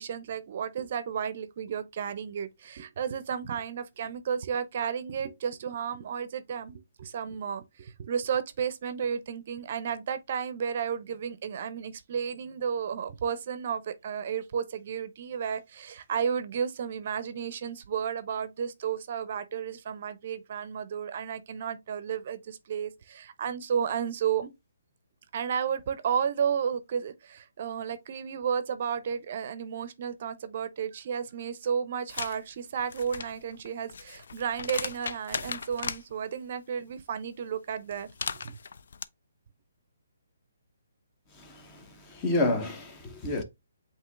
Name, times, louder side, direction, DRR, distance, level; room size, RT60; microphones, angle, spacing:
voice 1, 0.0-24.5 25.3-38.1 38.4-38.6, right 7 dB, 50° right, 0.5 m, -32 dB
sound 1, 32.1-32.4 32.8-36.0 37.9-39.0, left 6 dB, 65° left, 0.4 m, -37 dB
voice 2, 41.3-43.4, left 2 dB, 20° left, 0.8 m, -30 dB
7.8 x 2.8 x 2.3 m
hypercardioid pair, 150°, 0 cm